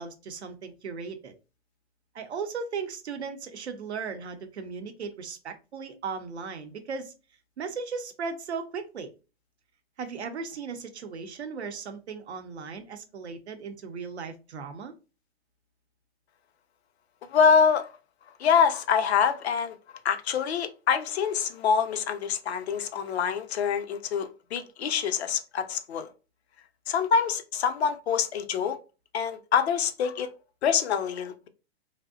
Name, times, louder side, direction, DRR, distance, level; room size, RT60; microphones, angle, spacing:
voice 1, 0.0-1.3 2.1-7.1 7.6-9.1 10.0-14.9, right 5 dB, 90° right, 0.6 m, -37 dB
voice 2, 17.3-17.9 18.4-19.7 20.0-26.1 26.9-28.8 29.1-30.3 30.6-31.3, left 6 dB, 75° left, 0.5 m, -25 dB
2.6 x 2.0 x 2.3 m
hypercardioid pair, 110°, 32 cm